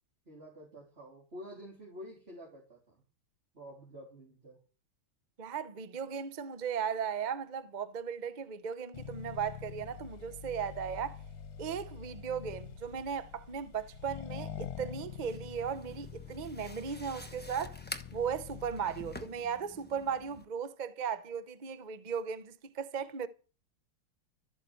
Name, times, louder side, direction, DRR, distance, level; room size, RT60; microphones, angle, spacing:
voice 1, 0.3-3.0 3.5-4.6, equal, 25° right, 3.6 m, -49 dB
voice 2, 5.4-11.2 11.6-17.8 18.1-23.3, right 7 dB, 80° right, 0.4 m, -37 dB
Accelerating revving vroom, 8.9-19.3, left 8 dB, 80° left, 1.8 m, -46 dB
sound 1, 15.3-20.4, left 1 dB, 10° left, 0.5 m, -48 dB
13.5 x 8.7 x 7.9 m
omnidirectional pair, 2.4 m